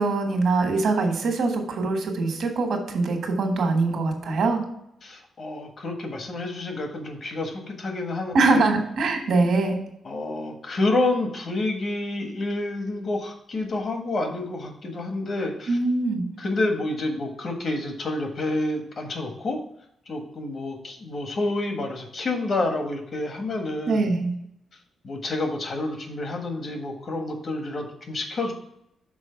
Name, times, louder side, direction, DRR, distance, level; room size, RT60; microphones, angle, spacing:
voice 1, 0.0-4.6 8.3-9.8 15.7-16.2 23.9-24.3, right 3 dB, 75° right, 4 dB, 1.5 m, -23 dB
voice 2, 5.0-8.7 10.0-15.8 16.4-19.6 20.1-24.1 25.0-28.5, left 2 dB, 50° left, 4 dB, 1.4 m, -29 dB
6.2 x 4.2 x 5.6 m, 0.76 s
cardioid pair, 110°, 0 cm